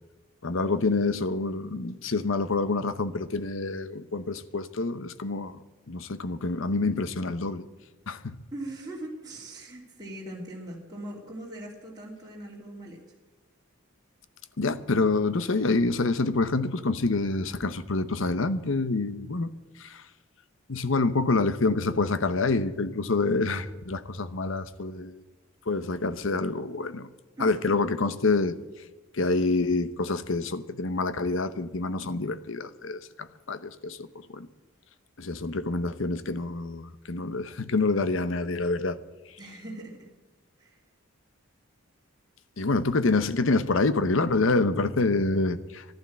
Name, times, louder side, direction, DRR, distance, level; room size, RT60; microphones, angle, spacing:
voice 1, 0.4-5.6 5.9-7.6 8.1-8.4 14.6-19.5 19.8-20.1 20.7-25.2 25.7-27.1 27.4-28.6 29.1-34.5 35.2-39.0 39.3-39.4 42.6-45.9, left 3 dB, 65° left, 13 dB, 0.8 m, -27 dB
voice 2, 8.5-13.0 27.4-27.6 39.4-40.1 40.6-40.8, right 1 dB, 20° right, -4 dB, 2.7 m, -40 dB
12.0 x 11.5 x 7.4 m, 1.2 s
head